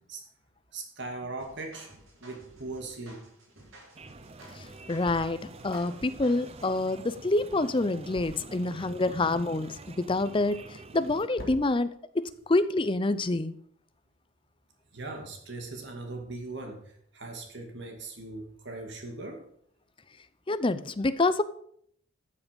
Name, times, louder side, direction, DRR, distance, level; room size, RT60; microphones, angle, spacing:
voice 1, 0.7-1.9 2.2-3.3 14.9-16.8 17.1-19.5, right 2 dB, 55° right, 3 dB, 2.5 m, -39 dB
sound 1, 1.4-6.7, right 1 dB, 85° right, 5.6 m, -54 dB
sound 2, 3.4-14.0, equal, 45° left, 2.9 m, -52 dB
sound 3, 3.9-11.3, right 3 dB, 30° right, 0.6 m, -47 dB
voice 2, 4.6-13.5 20.5-21.4, left 2 dB, 25° left, 13 dB, 0.5 m, -27 dB
13.0 x 7.3 x 5.3 m, 0.66 s
head